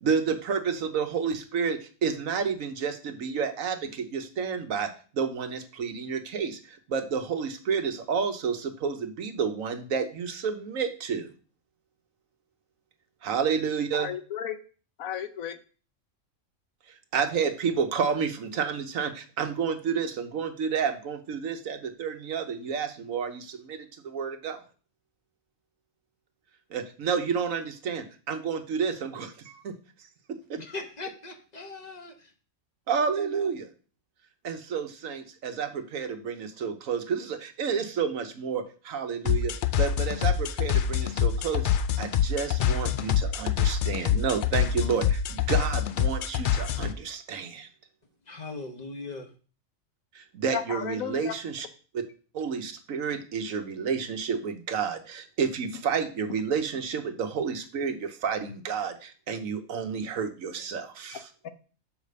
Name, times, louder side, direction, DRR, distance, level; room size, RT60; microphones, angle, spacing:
voice 1, 0.0-11.3 13.2-14.1 17.1-24.6 26.7-29.7 30.3-30.6 32.9-33.7 34.4-41.7 42.0-47.7 50.1-51.7 51.9-52.0 52.3-61.3, right 6 dB, 80° right, 7 dB, 1.3 m, -30 dB
voice 2, 14.0-14.6 15.0-15.6 50.5-51.3 61.1-61.5, left 9 dB, 90° left, 10 dB, 1.2 m, -34 dB
voice 3, 30.6-32.3 48.3-49.3, left 3 dB, 35° left, 4 dB, 1.0 m, -39 dB
sound 1, 39.3-46.9, left 9 dB, 70° left, 0.4 m, -26 dB
5.7 x 5.0 x 6.6 m, 0.38 s
omnidirectional pair, 1.4 m